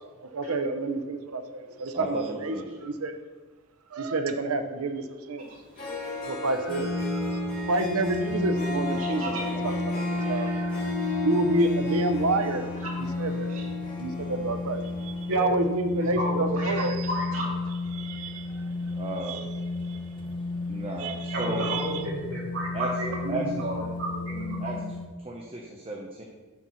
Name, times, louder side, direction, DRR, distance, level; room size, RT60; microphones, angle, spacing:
voice 1, 0.2-3.1 3.9-5.5 6.2-12.6 13.2-13.5 14.0-17.1 17.9-18.7 19.2-20.0 21.0-22.0, right 2 dB, 85° right, 8 dB, 0.7 m, -29 dB
voice 2, 1.9-2.6 18.9-19.5 20.7-21.7 22.7-22.9 23.3-23.4 24.6-24.8 25.2-26.2, right 2 dB, 25° right, -1 dB, 0.8 m, -34 dB
Harp, 5.5-5.6 5.8-15.3, left 2 dB, 40° left, 2.1 m, -35 dB
sound 1, 6.7-25.1, left 2 dB, 25° left, 0.7 m, -32 dB
voice 3, 9.0-9.4 12.8-12.9 13.5-13.6 15.3-15.5 16.0-17.5 21.3-24.7, right 1 dB, 70° right, -4 dB, 2.3 m, -32 dB
8.2 x 4.1 x 6.1 m, 1.3 s
head